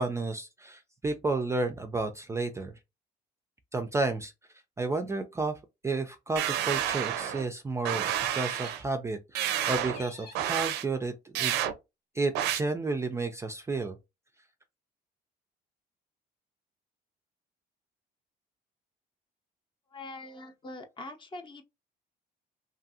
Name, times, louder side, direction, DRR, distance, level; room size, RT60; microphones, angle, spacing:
voice 1, 0.0-2.7 3.7-4.3 4.8-5.6 5.8-11.6 12.2-14.0, right 3 dB, 15° right, 0.3 m, -31 dB
sound 1, 6.4-7.5 7.9-8.8 9.4-10.0 10.4-10.8 11.4-11.7 12.4-12.6, right 11 dB, 90° right, 0.4 m, -29 dB
sound 2, 6.6-7.3 8.3-8.9 9.9-10.5, left 4 dB, 75° left, 1.2 m, -50 dB
voice 2, 19.9-21.6, left 2 dB, 30° left, 0.6 m, -43 dB
2.7 x 2.5 x 2.6 m
cardioid pair, 110°, 17 cm